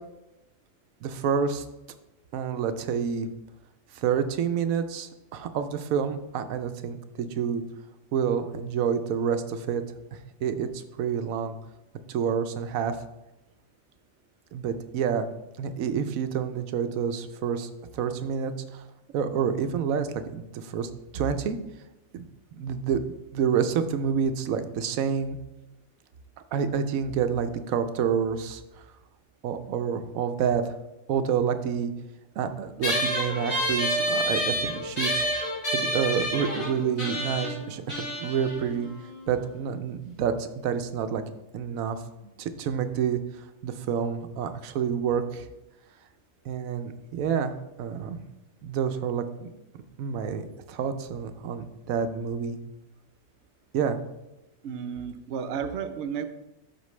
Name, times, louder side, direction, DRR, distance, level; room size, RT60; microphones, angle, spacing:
voice 1, 1.0-1.6 2.3-3.3 3.9-7.6 8.1-9.8 10.4-11.6 12.1-13.0 14.5-15.3 15.6-18.8 19.1-21.6 22.1-22.3 22.5-23.0 23.3-25.4 26.5-28.6 29.4-30.7 31.1-31.9 32.4-35.2 35.7-38.9 39.3-41.2 41.5-42.0 42.4-43.2 43.6-45.5 46.5-48.2 48.6-49.5 50.0-52.6 53.7-54.0, right 7 dB, 85° right, 9 dB, 1.1 m, -28 dB
sound 1, 32.8-39.6, equal, 55° left, 2.8 m, -29 dB
voice 2, 54.6-56.3, right 7 dB, 60° right, 8 dB, 0.9 m, -32 dB
12.0 x 4.4 x 3.2 m, 0.97 s
omnidirectional pair, 1.4 m